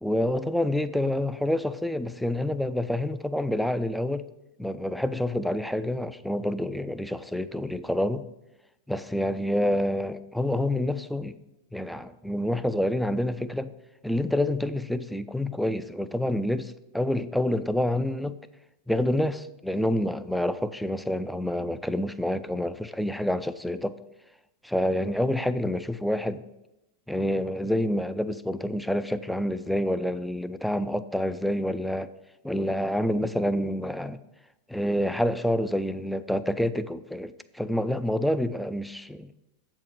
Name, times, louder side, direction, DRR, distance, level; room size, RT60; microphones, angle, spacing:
voice 1, 0.0-4.3 4.6-8.3 8.9-11.4 11.7-13.7 14.0-18.4 18.9-24.0 24.6-26.4 27.1-32.1 32.4-34.2 34.7-39.3, left 1 dB, ahead, 0.3 m, -27 dB
7.7 x 4.6 x 7.0 m
figure-of-eight pair, 90°, 0 cm